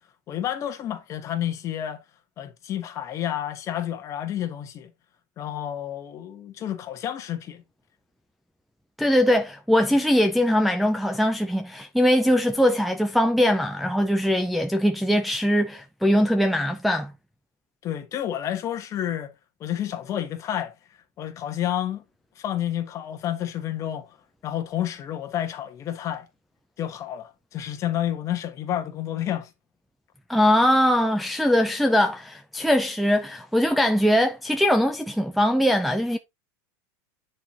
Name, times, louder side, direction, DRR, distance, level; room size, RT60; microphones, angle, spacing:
voice 1, 0.3-2.0 2.4-4.9 5.4-7.6 17.8-19.3 19.6-20.7 21.2-22.0 22.4-24.1 24.4-26.3 26.8-29.5, left 11 dB, 30° left, 1.3 m, -30 dB
voice 2, 9.0-17.1 30.3-36.2, equal, ahead, 0.4 m, -21 dB
9.2 x 4.5 x 3.9 m
supercardioid pair, 150°, 10 cm